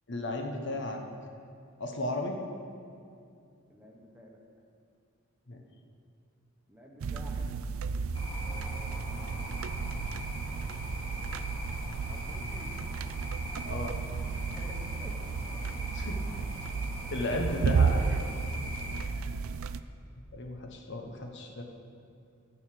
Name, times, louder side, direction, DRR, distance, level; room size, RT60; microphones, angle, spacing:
voice 1, 0.1-1.0 1.8-2.4 5.5-5.6 13.6-14.0 15.9-16.2 17.1-18.0 20.3-21.6, left 1 dB, 60° left, 2 dB, 1.1 m, -34 dB
voice 2, 3.7-4.4 6.7-7.4 8.4-10.0 12.1-12.8 14.5-15.2 15.5-15.6, equal, 10° right, 0 dB, 1.2 m, -52 dB
sound 1, 7.0-19.8, right 5 dB, 70° right, 0.4 m, -33 dB
sound 2, 8.1-19.0, equal, 25° left, 2.1 m, -43 dB
13.5 x 4.8 x 7.6 m, 2.5 s
head